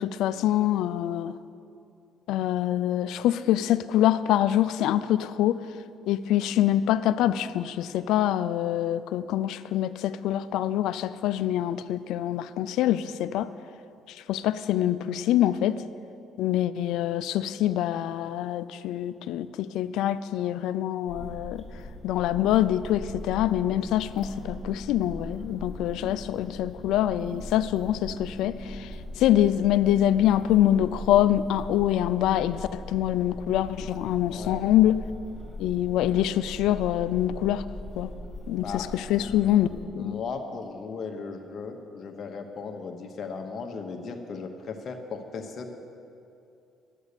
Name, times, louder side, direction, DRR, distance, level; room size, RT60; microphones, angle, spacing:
voice 1, 0.0-1.4 2.3-5.6 6.1-13.5 14.3-15.8 16.4-21.6 22.0-28.9 29.2-35.0 35.6-37.6 38.0-38.1 38.5-39.7 39.9-40.2, left 12 dB, 80° left, 14 dB, 0.3 m, -25 dB
sound 1, 21.1-39.8, left 1 dB, 5° right, 2.9 m, -40 dB
voice 2, 34.3-34.7 38.6-38.9 39.2-45.7, left 5 dB, 55° left, 4 dB, 1.0 m, -37 dB
11.0 x 8.1 x 6.7 m, 2.6 s
supercardioid pair, 75°, 0 cm